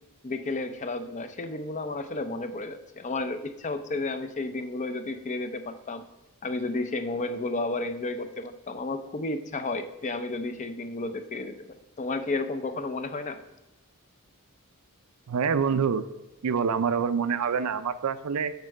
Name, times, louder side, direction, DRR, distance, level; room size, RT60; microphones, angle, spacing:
voice 1, 0.2-6.0 6.4-13.4, left 2 dB, 35° left, 9 dB, 0.5 m, -32 dB
voice 2, 15.3-16.0 16.4-18.5, right 6 dB, 80° right, 12 dB, 0.5 m, -26 dB
8.1 x 4.4 x 6.3 m, 0.98 s
head